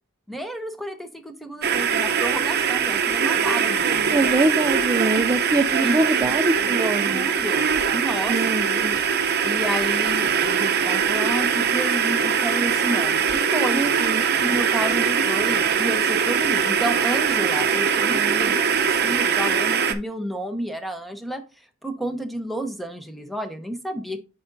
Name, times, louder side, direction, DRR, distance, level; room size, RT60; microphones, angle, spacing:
voice 1, 0.3-4.2 5.7-6.0 7.1-9.0 9.4-13.8 14.4-21.4 21.8-24.2, right 1 dB, ahead, 7 dB, 0.8 m, -31 dB
sound 1, 1.6-19.9, right 7 dB, 50° right, 0.7 m, -22 dB
voice 2, 4.1-7.3 8.3-8.9 13.7-14.3 18.1-18.6, right 2 dB, 20° right, 6 dB, 0.4 m, -24 dB
8.5 x 5.5 x 2.6 m, 0.30 s
head